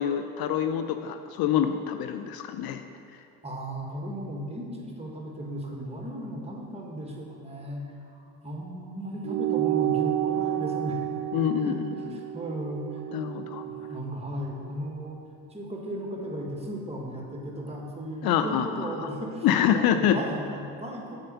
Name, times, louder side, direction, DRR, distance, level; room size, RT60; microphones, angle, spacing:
voice 1, 0.0-2.8 11.3-12.2 13.1-13.6 18.2-19.1 19.4-20.2, left 9 dB, 60° left, 8 dB, 0.6 m, -26 dB
voice 2, 3.4-7.8 8.1-11.0 11.6-13.0 13.6-15.2 15.5-21.2, right 1 dB, 15° right, -1 dB, 1.7 m, -36 dB
sound 1, 9.2-14.0, right 14 dB, 45° right, 0.4 m, -30 dB
7.9 x 5.0 x 5.6 m, 2.5 s
supercardioid pair, 75°, 41 cm